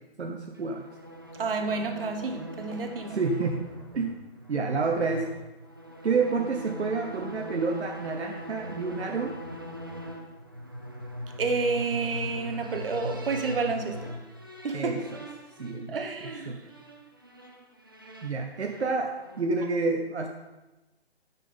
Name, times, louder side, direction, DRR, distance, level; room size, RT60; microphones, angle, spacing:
voice 1, 0.2-0.9 3.1-3.7 3.9-4.2 4.5-5.3 6.0-9.4 14.7-15.0 15.6-16.0 16.5-16.7 18.2-20.3, right 4 dB, 75° right, 3 dB, 0.8 m, -29 dB
sound 1, 0.5-19.6, equal, 20° right, 0.4 m, -41 dB
voice 2, 1.4-3.2 11.4-14.1 14.6-15.0 15.9-16.6, right 4 dB, 55° right, 5 dB, 1.1 m, -30 dB
9.6 x 5.9 x 3.6 m, 1.1 s
figure-of-eight pair, 145°, 33 cm